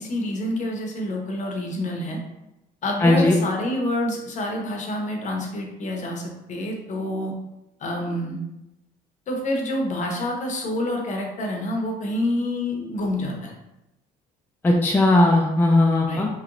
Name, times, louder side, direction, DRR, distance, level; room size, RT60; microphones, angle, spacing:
voice 1, 0.0-2.2 2.8-7.3 7.8-8.4 9.3-13.5 16.1-16.3, left 1 dB, 45° left, 1 dB, 0.7 m, -27 dB
voice 2, 3.0-3.4 14.6-16.3, left 2 dB, 10° left, -1 dB, 0.4 m, -17 dB
3.0 x 2.9 x 2.5 m, 0.92 s
cardioid pair, 110°, 17 cm